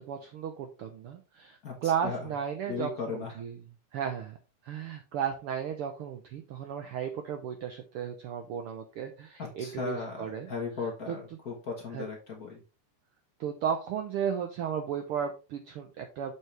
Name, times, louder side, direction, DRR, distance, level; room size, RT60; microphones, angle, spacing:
voice 1, 0.1-3.5 3.9-4.4 4.6-10.5 11.9-12.0 13.4-16.3, right 8 dB, 75° right, 6 dB, 1.3 m, -34 dB
voice 2, 1.6-2.3 2.7-3.4 9.4-12.6, left 4 dB, 55° left, 1 dB, 1.0 m, -37 dB
7.2 x 5.6 x 3.3 m, 0.32 s
omnidirectional pair, 3.4 m